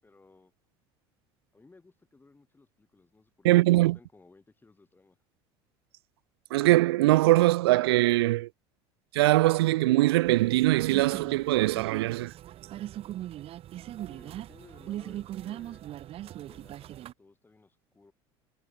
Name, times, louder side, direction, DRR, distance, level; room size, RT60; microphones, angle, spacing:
voice 1, 0.0-0.5 1.5-5.2 14.1-15.9 16.2-18.1, left 3 dB, 15° left, 7.9 m, -58 dB
voice 2, 3.4-4.0 6.5-8.5 9.1-12.3, right 18 dB, 90° right, 0.5 m, -22 dB
sound 1, 10.2-17.1, right 13 dB, 50° right, 1.5 m, -40 dB
supercardioid pair, 95°, 13 cm